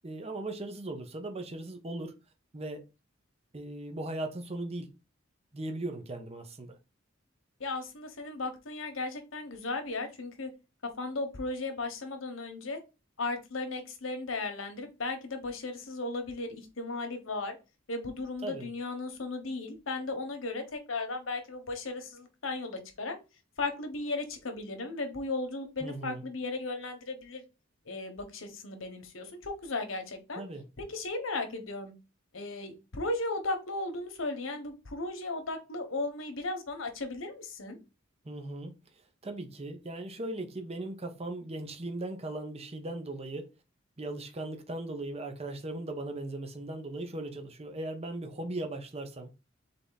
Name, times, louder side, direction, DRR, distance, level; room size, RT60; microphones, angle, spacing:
voice 1, 0.0-2.1 2.5-2.8 3.5-4.9 5.5-6.7 18.4-18.7 25.8-26.2 30.4-30.6 38.2-38.8 39.2-43.5 44.0-49.3, right 2 dB, 30° right, 0.8 m, -38 dB
voice 2, 7.6-10.5 11.0-12.8 13.2-17.6 17.9-23.1 23.6-27.4 27.8-30.4 30.8-31.9 32.3-37.8, left 2 dB, 80° left, 1.1 m, -36 dB
3.9 x 3.4 x 3.9 m
head